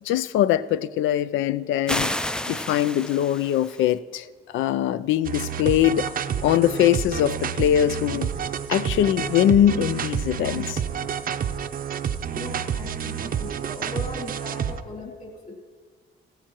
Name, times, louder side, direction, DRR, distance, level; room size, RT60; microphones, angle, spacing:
voice 1, 0.0-2.1 2.5-6.1 6.4-8.3 8.7-10.8, left 11 dB, 80° left, 0.4 m, -22 dB
sound 1, 1.9-3.9, left 1 dB, 5° left, 0.3 m, -30 dB
sound 2, 5.2-14.8, right 8 dB, 45° right, 0.6 m, -29 dB
voice 2, 12.3-15.6, left 2 dB, 40° left, 3.0 m, -39 dB
16.0 x 14.5 x 3.0 m
cardioid pair, 90°, 20 cm